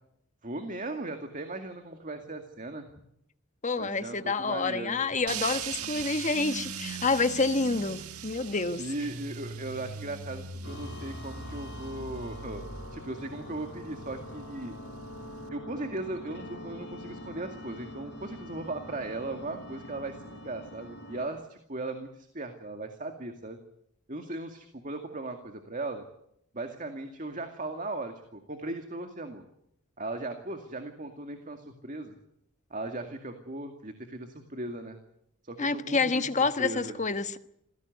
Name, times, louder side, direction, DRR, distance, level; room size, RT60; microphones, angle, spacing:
voice 1, 0.4-2.9 3.8-5.0 8.8-12.6 12.9-14.7 15.5-23.6 24.1-26.0 26.5-29.4 30.0-32.2 32.7-35.0 35.4-36.3 36.6-37.0, right 2 dB, 35° right, 2.2 m, -37 dB
voice 2, 3.6-8.8 35.6-37.4, left 3 dB, 35° left, 1.2 m, -28 dB
sound 1, 5.3-15.5, right 6 dB, 80° right, 1.7 m, -40 dB
sound 2, 10.6-21.3, left 1 dB, 50° left, 5.0 m, -44 dB
27.5 x 17.0 x 9.5 m
head